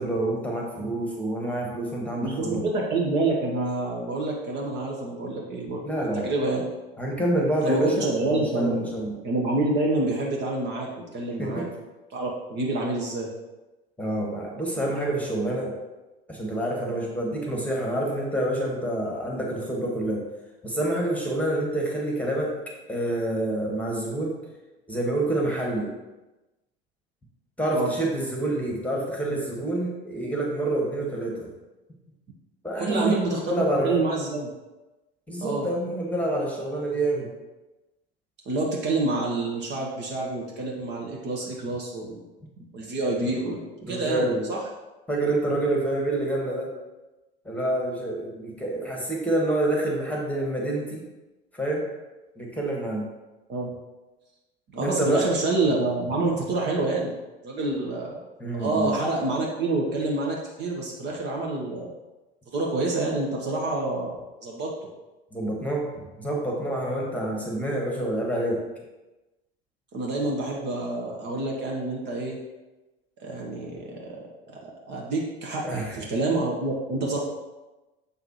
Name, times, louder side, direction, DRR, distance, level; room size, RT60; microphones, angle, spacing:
voice 1, 0.0-2.6 5.8-6.3 7.0-9.1 11.4-11.7 14.0-15.7 16.3-20.2 20.6-22.5 22.9-24.3 24.9-25.9 27.6-31.5 32.6-34.0 35.3-37.3 43.8-44.5 45.1-46.7 47.4-51.0 51.5-51.9 52.4-53.0 54.8-55.2 58.4-58.9 65.3-68.6 75.6-76.0, right 1 dB, 5° left, -1 dB, 1.5 m, -27 dB
voice 2, 2.2-5.8 6.2-6.7 7.6-8.8 9.2-11.7 12.1-13.3 27.7-27.9 32.8-34.5 35.4-35.7 38.5-42.2 42.6-43.6 43.9-44.6 48.7-48.8 53.5-53.7 54.7-57.1 57.4-58.2 58.6-61.9 62.5-64.2 64.4-64.9 69.9-72.4 73.2-77.2, right 2 dB, 35° right, -1 dB, 1.1 m, -27 dB
6.9 x 5.8 x 3.1 m, 1.1 s
figure-of-eight pair, 75°, 31 cm